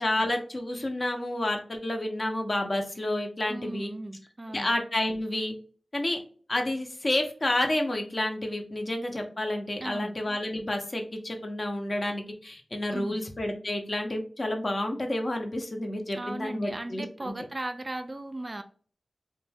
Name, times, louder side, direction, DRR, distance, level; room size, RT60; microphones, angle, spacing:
voice 1, 0.0-3.9 4.5-5.5 5.9-6.2 6.5-17.3, left 1 dB, 45° left, 4 dB, 0.6 m, -30 dB
voice 2, 3.5-4.7 9.8-10.1 12.9-13.2 16.1-18.6, right 1 dB, 35° right, 7 dB, 0.3 m, -37 dB
2.6 x 2.1 x 3.3 m, 0.43 s
wide cardioid pair, 65°, 0 cm